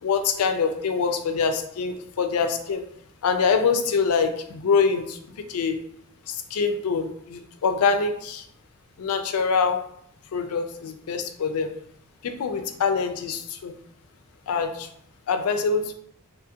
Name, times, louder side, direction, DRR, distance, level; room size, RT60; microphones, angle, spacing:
voice 1, 0.0-2.8 3.2-5.2 5.5-5.8 6.3-8.4 9.0-9.8 10.3-11.7 12.2-13.7 14.5-14.9 15.3-15.9, left 5 dB, 80° left, 7 dB, 0.4 m, -24 dB
2.8 x 2.4 x 2.7 m, 0.70 s
head